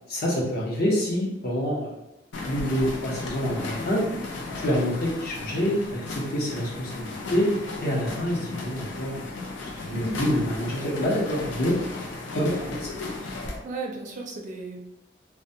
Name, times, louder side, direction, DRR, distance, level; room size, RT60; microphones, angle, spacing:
voice 1, 0.1-1.9 2.4-4.1 4.6-9.2 9.6-11.8 12.3-12.9, equal, 55° left, -3 dB, 0.7 m, -27 dB
sound 1, 2.3-13.6, left 2 dB, 90° left, 0.5 m, -35 dB
voice 2, 9.9-10.3 13.6-14.8, right 2 dB, 45° right, 0 dB, 0.4 m, -34 dB
2.2 x 2.1 x 2.7 m, 0.90 s
head